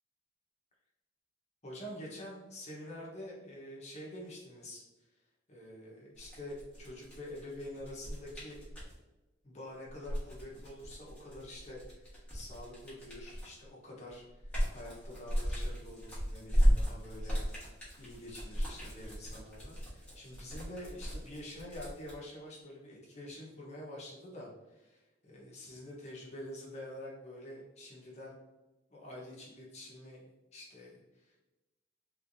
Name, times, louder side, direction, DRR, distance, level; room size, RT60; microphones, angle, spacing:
voice 1, 1.6-4.8 5.5-8.6 9.4-28.4 28.9-30.2 30.5-31.4, left 1 dB, 35° left, -4 dB, 1.1 m, -47 dB
sound 1, 6.2-8.9 9.9-13.6 14.1-22.1, equal, 5° left, 1.3 m, -34 dB
3.4 x 3.4 x 2.6 m, 1.1 s
head